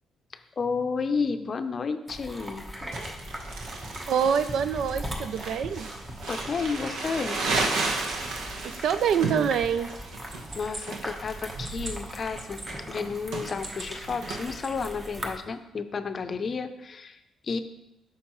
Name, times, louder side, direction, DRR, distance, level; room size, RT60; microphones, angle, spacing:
voice 1, 0.3-2.9 6.3-7.4 10.5-17.6, left 5 dB, 45° left, 9 dB, 0.5 m, -32 dB
sound 1, 2.1-15.4, equal, 20° right, 1.1 m, -40 dB
Crumpling crinkling, 2.9-14.4, right 3 dB, 90° right, 1.0 m, -34 dB
voice 2, 4.1-5.9 8.6-9.9, right 7 dB, 70° right, 12 dB, 0.4 m, -25 dB
sound 2, 9.9-12.7 13.3-14.0 14.3-15.1, right 2 dB, 50° right, 1.3 m, -43 dB
8.4 x 5.9 x 3.1 m, 0.92 s
cardioid pair, 90°, 0 cm